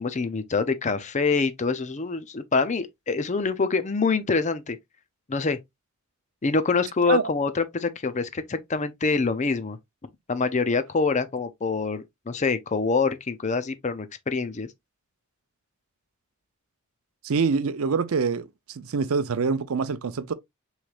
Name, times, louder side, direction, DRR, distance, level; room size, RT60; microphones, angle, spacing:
voice 1, 0.0-4.8 5.3-5.6 6.4-9.8 10.3-14.7, left 4 dB, 35° left, 0.5 m, -25 dB
voice 2, 17.2-20.3, right 5 dB, 75° right, 0.5 m, -25 dB
6.2 x 3.2 x 2.4 m
head